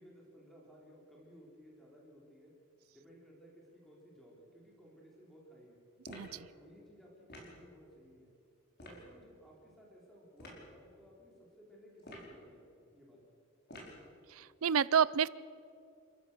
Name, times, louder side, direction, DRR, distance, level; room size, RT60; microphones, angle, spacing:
voice 1, 0.0-2.5 2.9-5.9 6.5-8.4 8.8-13.2, equal, ahead, -4 dB, 3.7 m, -58 dB
sound 1, 6.0-6.4 7.3-7.6 8.8-9.0 10.4-10.6 12.0-12.4 13.7-14.0, left 1 dB, 50° left, 5.0 m, -49 dB
voice 2, 6.1-6.5 14.3-15.3, right 7 dB, 75° right, 20 dB, 0.5 m, -29 dB
28.5 x 14.5 x 6.7 m, 2.5 s
head